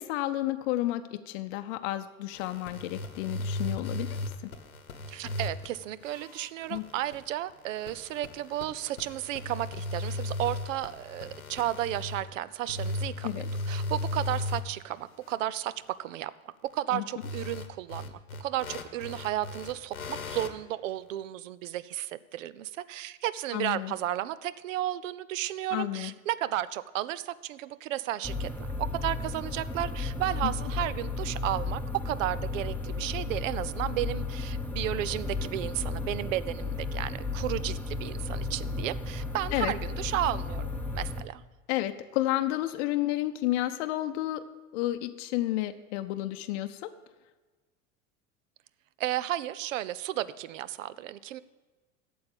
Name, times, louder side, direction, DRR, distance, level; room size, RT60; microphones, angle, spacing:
voice 1, 0.0-4.5 6.7-6.8 13.2-13.5 16.9-17.0 23.5-23.9 25.7-26.1 30.4-30.5 39.5-39.7 41.7-44.4 44.7-46.9, left 15 dB, 55° left, 8 dB, 0.7 m, -31 dB
Soma Ether Recording Electromagnetic field, 2.3-5.7 6.0-12.3 12.7-14.8 15.2-15.3 17.2-20.5, left 2 dB, 85° left, 1.0 m, -36 dB
voice 2, 5.1-15.7 16.0-16.3 16.7-40.7 40.9-41.4 49.0-51.4, right 13 dB, 65° right, 17 dB, 0.6 m, -33 dB
sound 1, 28.2-41.2, left 3 dB, 5° left, 0.9 m, -34 dB
8.6 x 7.2 x 8.7 m, 1.3 s
figure-of-eight pair, 80°, 41 cm